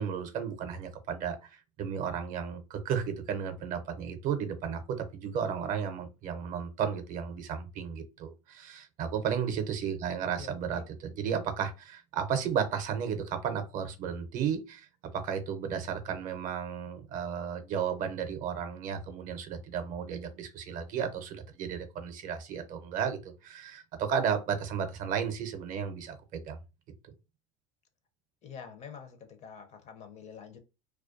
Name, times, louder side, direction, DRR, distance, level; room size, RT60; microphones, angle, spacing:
voice 1, 0.0-14.9 15.1-26.6, right 7 dB, 45° right, 0.6 m, -33 dB
voice 2, 28.4-30.6, left 7 dB, 40° left, 0.5 m, -46 dB
2.3 x 2.2 x 2.4 m
hypercardioid pair, 90°, 18 cm